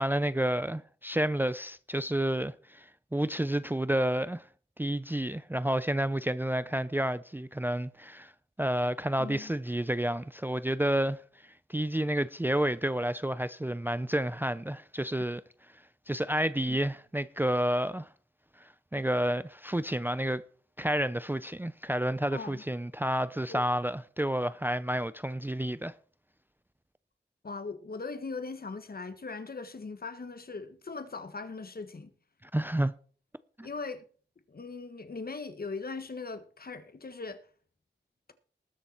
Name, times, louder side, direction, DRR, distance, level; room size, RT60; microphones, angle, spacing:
voice 1, 0.0-4.4 4.8-8.3 8.6-11.2 11.7-15.4 16.1-18.1 18.6-20.4 20.8-25.9 32.5-32.9 33.6-33.7, right 1 dB, 10° right, 0.5 m, -30 dB
voice 2, 9.2-9.5 16.7-16.8 22.3-22.6 23.5-23.6 27.4-32.1 33.6-34.0 34.5-37.4, left 4 dB, 55° left, 1.5 m, -39 dB
20.0 x 6.8 x 4.4 m
wide cardioid pair, 95°, 19 cm